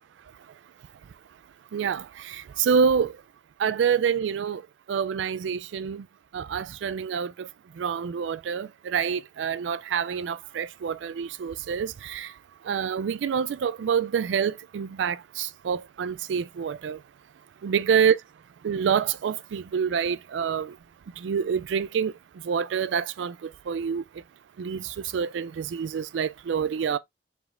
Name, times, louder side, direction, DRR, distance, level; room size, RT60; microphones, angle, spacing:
voice 1, 1.7-3.1 3.6-4.6 4.9-6.0 6.3-7.5 7.8-12.3 12.7-17.0 17.6-18.2 18.6-20.7 21.2-22.1 22.4-24.0 24.6-27.0, right 7 dB, 90° right, 0.3 m, -27 dB
4.7 x 3.6 x 2.5 m
head